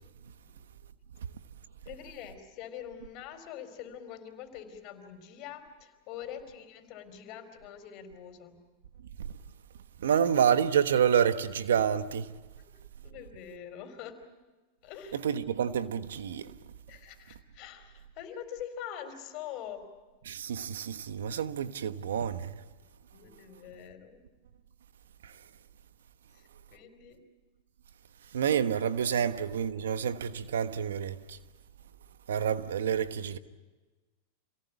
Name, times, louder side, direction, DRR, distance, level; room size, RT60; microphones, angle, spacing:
voice 1, 1.8-8.6 13.0-14.3 14.8-15.2 16.9-19.9 23.1-24.2 26.3-27.3, left 9 dB, 50° left, 4.4 m, -44 dB
voice 2, 10.0-12.3 15.2-16.5 20.3-22.6 25.2-25.3 28.3-31.4 32.3-33.4, right 8 dB, 85° right, 1.2 m, -28 dB
27.5 x 18.0 x 8.4 m
hypercardioid pair, 115°, 0 cm